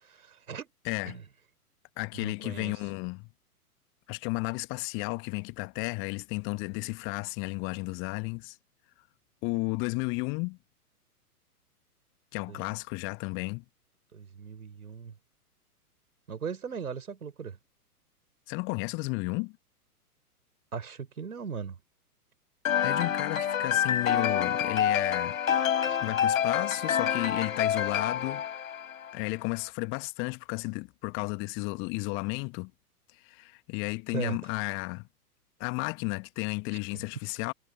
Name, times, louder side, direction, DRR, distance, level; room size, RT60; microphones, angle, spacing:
voice 1, 0.0-0.7 1.1-1.2 2.1-2.8 12.5-12.6 14.1-15.1 16.3-17.6 20.7-21.8 25.9-26.0 34.1-34.4, right 6 dB, 65° right, 4.6 m, -38 dB
voice 2, 0.8-1.2 2.0-3.3 4.1-8.6 9.4-10.6 12.3-13.6 18.5-19.5 22.8-25.4 26.0-28.4 29.1-32.7 33.1-35.1 35.6-37.5, left 29 dB, 25° left, 1.6 m, -33 dB
sound 1, 22.6-29.3, left 9 dB, 60° left, 5.3 m, -27 dB
figure-of-eight pair, 115°, 46 cm